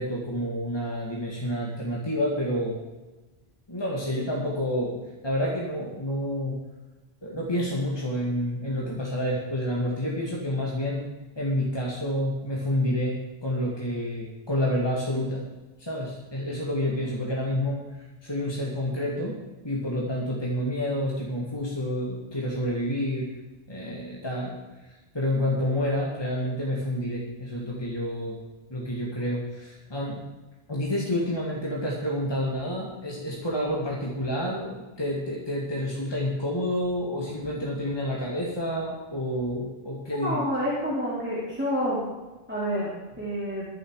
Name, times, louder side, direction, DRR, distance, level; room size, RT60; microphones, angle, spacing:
voice 1, 0.0-2.8 3.7-6.6 7.2-11.0 11.4-13.2 13.4-15.4 15.8-19.4 19.6-23.3 23.7-24.6 24.9-28.4 28.7-30.2 30.7-40.4, left 1 dB, 25° left, -4 dB, 2.3 m, -29 dB
voice 2, 40.2-42.0 42.5-42.9 43.2-43.7, equal, 10° right, -8 dB, 3.5 m, -28 dB
22.5 x 7.9 x 4.9 m, 1.1 s
omnidirectional pair, 1.1 m